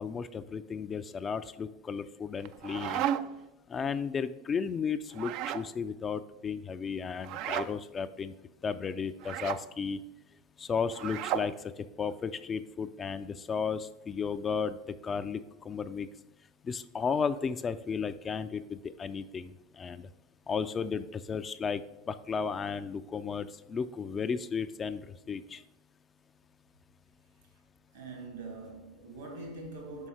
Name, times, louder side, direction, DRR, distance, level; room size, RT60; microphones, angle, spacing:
voice 1, 0.0-3.1 3.7-8.3 8.6-10.0 10.6-14.8 15.0-16.1 16.6-19.5 19.8-20.1 20.5-21.8 22.1-25.0 25.3-25.6, left 6 dB, 25° left, 0.3 m, -34 dB
sound 1, 2.4-3.5 5.1-5.7 7.2-7.7 9.2-9.6 10.9-11.5, right 10 dB, 55° right, 0.3 m, -33 dB
voice 2, 27.9-30.1, right 2 dB, 75° right, 2.2 m, -43 dB
5.5 x 5.4 x 4.9 m
hypercardioid pair, 85°, 0 cm